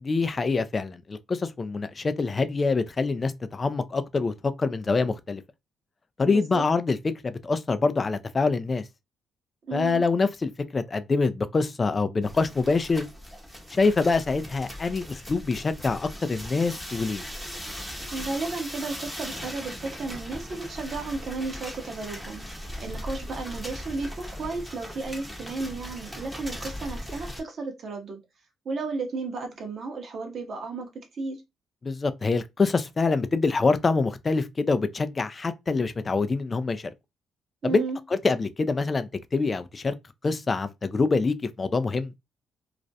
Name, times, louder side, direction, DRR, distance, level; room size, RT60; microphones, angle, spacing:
voice 1, 0.0-5.4 6.2-7.0 7.2-8.8 9.7-13.1 13.7-17.2 31.8-36.9 37.6-37.8 38.2-39.9 40.2-42.1, left 4 dB, 30° left, 0.3 m, -25 dB
voice 2, 6.3-6.6 9.7-10.0 18.1-22.4 22.8-28.2 28.6-31.4 37.6-38.0, right 3 dB, 55° right, 0.7 m, -33 dB
sound 1, 12.2-27.4, equal, ahead, 0.7 m, -39 dB
2.4 x 2.1 x 2.6 m
cardioid pair, 90°, 0 cm